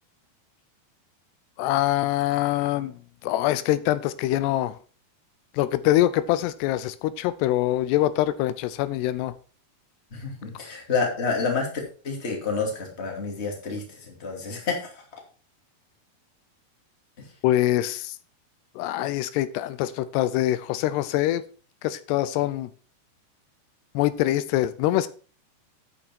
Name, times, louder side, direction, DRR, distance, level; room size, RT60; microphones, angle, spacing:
voice 1, 1.6-4.8 5.5-9.3 17.4-18.2 18.8-21.4 21.8-22.7 23.9-25.1, left 14 dB, 90° left, 14 dB, 2.8 m, -24 dB
voice 2, 10.1-11.7 12.0-14.9 17.2-17.3, left 4 dB, 20° left, 0 dB, 2.3 m, -29 dB
8.8 x 8.5 x 4.5 m, 0.38 s
omnidirectional pair, 4.7 m